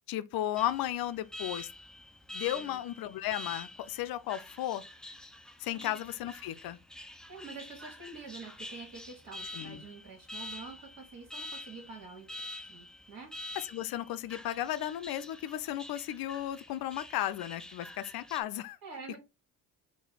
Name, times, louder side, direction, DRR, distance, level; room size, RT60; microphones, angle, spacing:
voice 1, 0.1-1.7 2.3-4.8 5.6-6.8 9.5-9.8 13.6-18.8, left 13 dB, 55° left, 0.6 m, -34 dB
Alarm, 0.6-18.4, left 1 dB, ahead, 0.3 m, -47 dB
voice 2, 7.3-13.3 18.0-18.1 18.8-19.2, right 4 dB, 50° right, 1.5 m, -47 dB
4.0 x 2.2 x 3.9 m
hypercardioid pair, 55°, 44 cm